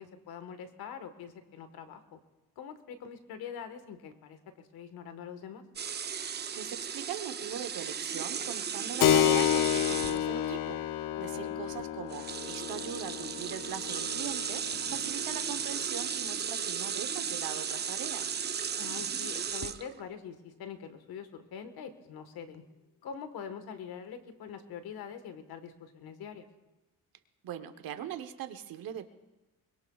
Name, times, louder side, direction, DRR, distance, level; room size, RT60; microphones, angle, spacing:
voice 1, 0.0-2.2 2.6-5.6 11.1-11.5 18.8-22.6 23.0-26.5, left 7 dB, 80° left, 9 dB, 1.5 m, -44 dB
sound 1, 5.8-10.5 11.7-11.8 12.1-20.0, right 7 dB, 30° right, 0.5 m, -35 dB
voice 2, 6.5-10.8 11.2-18.4 27.4-29.1, right 10 dB, 70° right, 9 dB, 1.1 m, -41 dB
Keyboard (musical), 9.0-17.2, left 11 dB, 60° left, 0.6 m, -31 dB
23.5 x 21.5 x 2.4 m, 1.1 s
cardioid pair, 130°, 37 cm